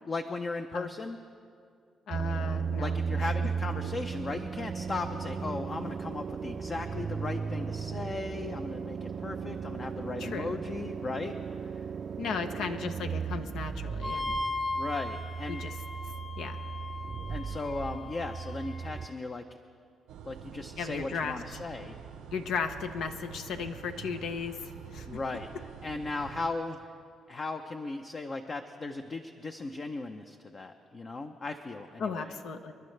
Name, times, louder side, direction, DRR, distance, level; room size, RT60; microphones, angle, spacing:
voice 1, 0.1-1.2 2.8-11.8 14.8-15.6 17.3-19.4 20.3-22.0 25.1-25.5 25.8-26.9 27.3-32.3, left 3 dB, 40° left, 6 dB, 0.6 m, -37 dB
voice 2, 2.1-3.3 10.2-10.6 12.2-14.4 15.5-15.7 16.4-16.6 20.8-21.4 22.3-25.2 32.0-32.7, left 5 dB, 80° left, 7 dB, 0.8 m, -36 dB
sound 1, 2.1-19.1, right 6 dB, 45° right, 0.4 m, -36 dB
Wind instrument woodwind instrument, 14.0-19.0, left 2 dB, 5° left, 0.8 m, -38 dB
sound 2, 20.1-26.5, right 7 dB, 90° right, 0.8 m, -46 dB
28.5 x 11.0 x 3.3 m, 2.4 s
cardioid pair, 90°, 0 cm